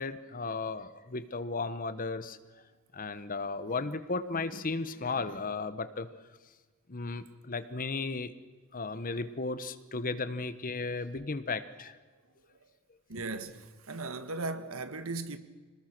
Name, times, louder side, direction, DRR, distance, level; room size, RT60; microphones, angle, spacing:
voice 1, 0.0-2.4 2.9-6.1 6.9-8.3 8.7-12.0, left 3 dB, 40° left, 1.1 m, -35 dB
voice 2, 13.1-15.4, right 3 dB, 75° right, 1.6 m, -37 dB
27.0 x 19.5 x 6.1 m
head